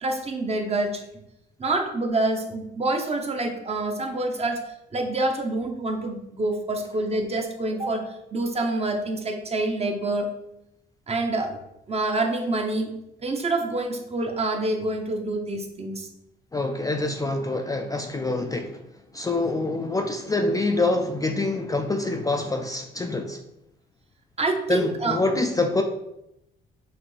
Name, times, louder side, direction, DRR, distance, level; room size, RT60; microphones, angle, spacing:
voice 1, 0.0-1.0 1.6-4.6 4.9-10.3 11.1-11.6 11.9-12.9 13.2-16.1 24.4-25.2, right 2 dB, 30° right, 3 dB, 0.8 m, -27 dB
voice 2, 16.5-18.8 19.1-23.4 24.7-25.8, left 2 dB, 20° left, 4 dB, 0.4 m, -26 dB
5.8 x 2.6 x 3.2 m, 0.85 s
cardioid pair, 90°, 20 cm